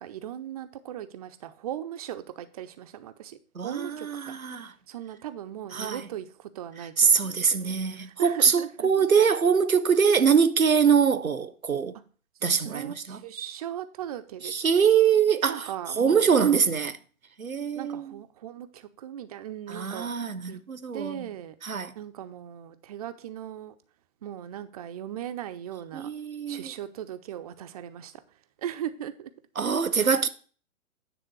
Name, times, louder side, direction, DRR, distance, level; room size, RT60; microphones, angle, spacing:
voice 1, 0.0-4.4 4.9-8.9 12.4-14.9 15.5-16.3 17.7-20.1 20.5-20.6 20.9-21.6 22.0-23.7 24.2-26.1 26.5-28.2 28.6-29.3, right 11 dB, 30° right, 0.5 m, -38 dB
voice 2, 3.5-4.7 5.7-6.1 7.0-11.9 12.4-13.2 14.4-15.7 16.0-17.0 17.4-18.1 19.7-21.3 21.6-21.9 25.9-26.7 29.6-30.3, right 6 dB, 85° right, 0.8 m, -23 dB
9.6 x 3.6 x 6.1 m
figure-of-eight pair, 115°, 41 cm